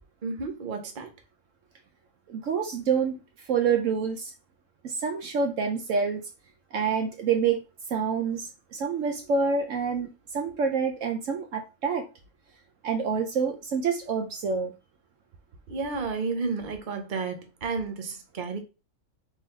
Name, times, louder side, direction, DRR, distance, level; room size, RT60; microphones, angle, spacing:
voice 1, 0.2-1.1 15.7-18.6, right 4 dB, 40° right, 0.9 m, -32 dB
voice 2, 2.3-3.2 3.5-4.3 4.8-6.2 6.7-7.6 7.9-12.0 12.8-14.7, right 5 dB, 70° right, 1.0 m, -27 dB
3.8 x 2.9 x 4.4 m
omnidirectional pair, 1.5 m